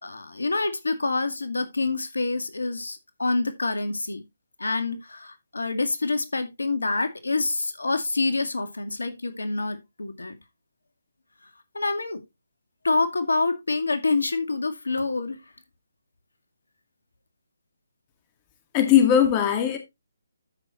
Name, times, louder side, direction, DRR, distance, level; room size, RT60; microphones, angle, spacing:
voice 1, 0.0-4.2 4.6-10.4 11.7-12.2 12.8-15.4, left 3 dB, 75° left, 2.1 m, -27 dB
voice 2, 18.7-19.8, left 9 dB, 25° left, 1.9 m, -19 dB
13.0 x 6.3 x 3.0 m
figure-of-eight pair, 145°, 0 cm